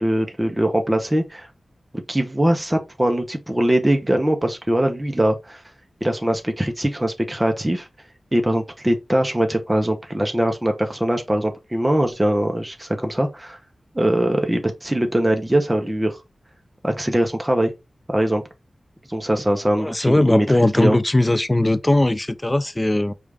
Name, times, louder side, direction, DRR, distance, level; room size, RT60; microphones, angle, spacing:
voice 1, 0.0-1.5 2.1-5.6 6.0-7.9 8.3-13.6 13.9-16.2 16.8-17.7 18.1-18.4 19.1-20.5 20.7-21.0, right 1 dB, 15° right, 0.8 m, -21 dB
voice 2, 19.8-23.1, left 1 dB, 15° left, 0.4 m, -19 dB
5.0 x 2.5 x 3.3 m
wide cardioid pair, 115°, 0 cm